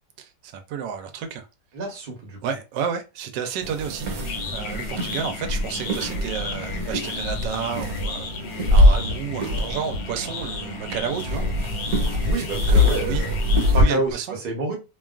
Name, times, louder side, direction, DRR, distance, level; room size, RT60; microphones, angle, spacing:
voice 1, 0.2-1.5 2.4-4.1 4.5-11.4 12.5-13.2 13.7-14.4, right 7 dB, 85° right, 1.2 m, -31 dB
voice 2, 1.7-2.4 12.2-13.4 13.7-14.2 14.4-14.8, right 3 dB, 40° right, 0.9 m, -28 dB
sound 1, 3.6-13.8, left 1 dB, 65° right, 1.3 m, -23 dB
sound 2, 3.8-14.1, left 5 dB, 85° left, 1.2 m, -35 dB
2.9 x 2.3 x 2.3 m
omnidirectional pair, 1.8 m